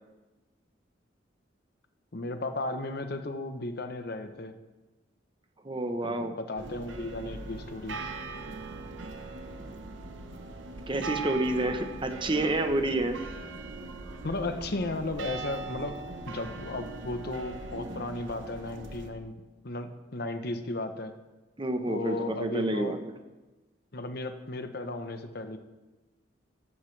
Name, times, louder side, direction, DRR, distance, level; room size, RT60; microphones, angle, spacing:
voice 1, 2.1-4.6 6.0-8.1 10.9-11.1 14.2-16.0 16.2-19.3 19.6-21.1 21.9-23.0 23.9-25.6, left 2 dB, 55° left, 8 dB, 1.0 m, -35 dB
voice 2, 5.6-6.3 10.9-13.2 21.6-23.0, right 1 dB, 25° right, 6 dB, 1.0 m, -29 dB
sound 1, 6.6-19.1, right 3 dB, 85° right, 1.1 m, -40 dB
14.5 x 11.0 x 3.3 m, 1.1 s
head